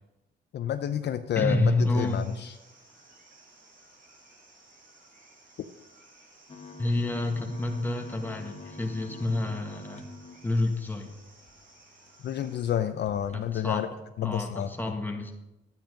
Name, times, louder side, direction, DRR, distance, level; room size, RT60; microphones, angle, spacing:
voice 1, 0.5-2.5 12.2-13.9 14.2-14.7, left 10 dB, 60° left, 9 dB, 0.6 m, -29 dB
voice 2, 1.4-2.4 6.8-10.1 10.4-11.1 13.3-13.9 14.2-15.3, left 2 dB, 10° left, 2 dB, 1.7 m, -29 dB
sound 1, 1.9-12.7, right 2 dB, 45° right, 4.9 m, -57 dB
sound 2, 6.5-11.5 12.1-12.2 12.4-12.6 13.1-13.4, left 3 dB, 30° left, 1.3 m, -46 dB
10.5 x 9.0 x 5.2 m, 1.0 s
cardioid pair, 90°, 20 cm